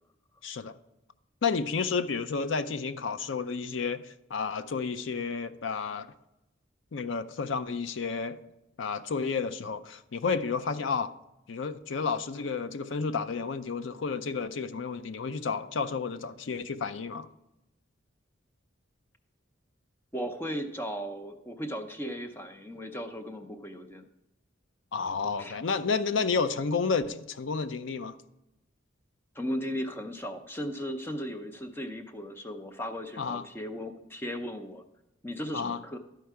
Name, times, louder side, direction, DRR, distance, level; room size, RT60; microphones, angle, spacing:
voice 1, 0.4-0.8 1.4-6.1 6.9-8.4 8.8-11.1 11.5-17.3 24.9-28.2 33.2-33.5 35.5-35.8, left 5 dB, 70° left, 11 dB, 0.5 m, -31 dB
voice 2, 20.1-24.0 25.4-25.5 29.3-34.8 35.2-36.0, equal, 10° left, 7 dB, 0.6 m, -36 dB
12.5 x 4.6 x 4.7 m, 0.89 s
head